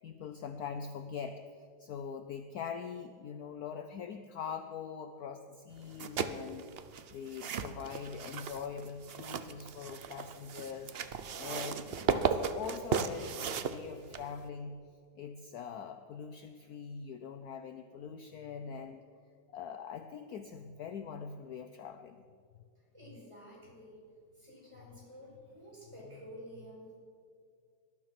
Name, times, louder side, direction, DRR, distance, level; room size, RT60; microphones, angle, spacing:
voice 1, 0.0-6.7 7.1-10.9 11.4-14.8 15.2-19.0 19.5-22.2 26.1-26.2, left 6 dB, 65° left, 9 dB, 1.1 m, -43 dB
sound 1, 5.8-14.5, right 6 dB, 60° right, 0.6 m, -36 dB
voice 2, 22.8-24.0 24.3-27.0, equal, 15° right, -4 dB, 5.5 m, -51 dB
19.0 x 12.0 x 6.0 m, 2.2 s
omnidirectional pair, 2.0 m